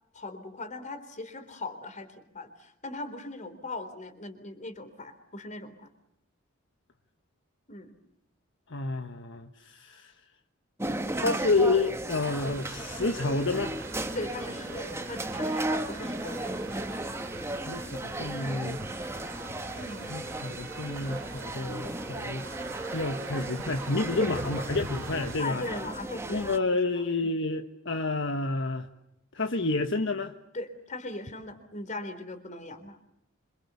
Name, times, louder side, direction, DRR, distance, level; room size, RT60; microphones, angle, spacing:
voice 1, 0.1-5.9 7.7-7.9 14.1-16.5 19.7-20.1 25.4-26.6 27.0-27.3 30.5-33.0, left 2 dB, 35° left, 10 dB, 4.0 m, -39 dB
voice 2, 8.7-10.1 11.1-13.8 17.4-19.3 20.1-22.5 22.9-25.6 26.3-28.9 29.3-30.3, left 3 dB, 60° left, 6 dB, 1.5 m, -30 dB
sound 1, 10.8-26.6, right 1 dB, 15° right, 1.7 m, -35 dB
sound 2, 12.1-25.4, right 3 dB, 65° right, 2.9 m, -44 dB
28.0 x 26.5 x 7.0 m, 0.77 s
head